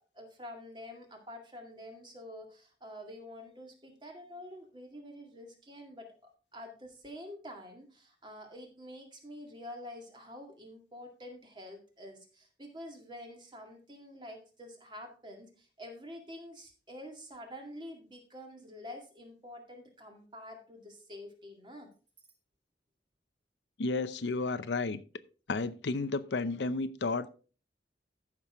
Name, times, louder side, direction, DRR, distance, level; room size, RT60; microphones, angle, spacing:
voice 1, 0.0-6.1 6.5-21.9, left 1 dB, 25° right, 2.1 m, -47 dB
voice 2, 23.8-25.0 25.5-27.3, left 3 dB, 85° left, 0.6 m, -32 dB
14.0 x 6.1 x 3.5 m
head